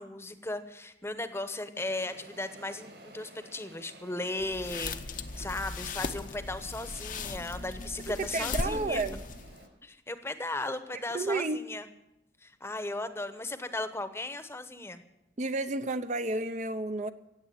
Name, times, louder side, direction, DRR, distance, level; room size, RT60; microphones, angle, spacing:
voice 1, 0.0-9.0 9.8-11.9 12.4-15.0, left 2 dB, 15° left, 10 dB, 0.9 m, -36 dB
sound 1, 1.7-9.7, right 1 dB, 65° right, 5.7 m, -54 dB
sound 2, 4.4-9.6, left 3 dB, 45° left, 0.8 m, -38 dB
voice 2, 8.1-9.2 11.1-11.6 15.4-17.1, right 2 dB, 40° right, 10 dB, 0.6 m, -31 dB
16.0 x 8.4 x 9.8 m, 0.90 s
head